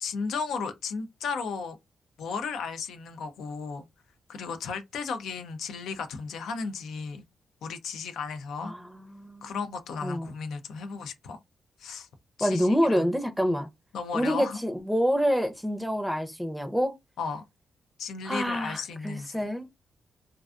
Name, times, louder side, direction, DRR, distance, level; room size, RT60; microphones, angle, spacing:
voice 1, 0.0-1.8 2.2-3.9 4.3-7.2 7.6-8.7 9.4-11.4 11.8-12.1 12.4-13.1 13.9-14.6 17.2-17.4 18.0-19.5, left 5 dB, 85° left, 0.4 m, -34 dB
voice 2, 8.6-9.6 10.0-10.3 12.4-13.7 14.1-16.9 18.2-19.7, equal, ahead, 0.5 m, -27 dB
2.4 x 2.2 x 2.4 m
cardioid pair, 70°, 0 cm